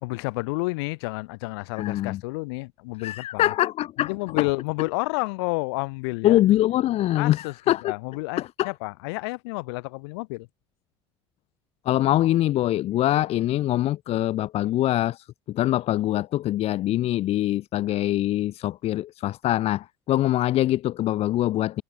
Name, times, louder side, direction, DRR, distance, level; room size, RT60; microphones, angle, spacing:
voice 1, 0.0-3.5 4.0-6.4 7.2-10.5, left 27 dB, 70° left, 4.8 m, -30 dB
voice 2, 1.8-2.2 3.0-4.5 6.2-7.9 8.4-8.7 11.9-21.8, left 14 dB, 50° left, 0.7 m, -24 dB
hypercardioid pair, 70°, 13 cm